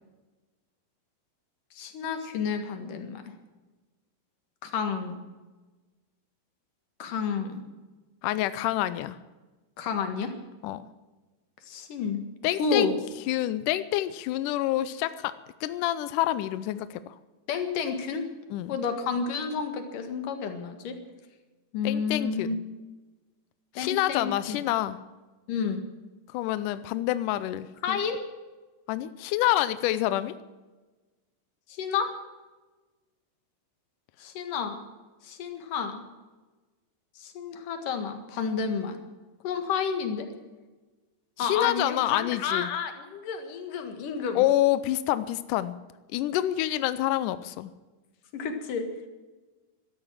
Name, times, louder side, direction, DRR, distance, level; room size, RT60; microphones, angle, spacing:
voice 1, 1.7-3.2 4.6-5.2 7.0-7.6 9.8-10.3 11.7-12.2 12.6-12.9 17.5-18.2 18.7-21.0 21.7-22.6 23.7-24.6 25.5-25.8 27.8-28.2 31.7-32.1 34.2-34.8 35.2-36.0 37.2-39.0 39.4-40.3 41.4-44.4 48.3-48.9, left 5 dB, 65° left, 7 dB, 3.1 m, -30 dB
voice 2, 8.2-9.2 10.6-10.9 12.4-12.9 13.3-15.3 15.6-17.0 18.5-18.8 21.8-22.6 23.8-25.0 26.3-28.0 28.9-30.4 41.4-42.7 44.4-45.8 46.1-47.7, left 14 dB, 85° left, 14 dB, 1.8 m, -27 dB
14.5 x 13.0 x 7.5 m, 1.2 s
omnidirectional pair, 4.4 m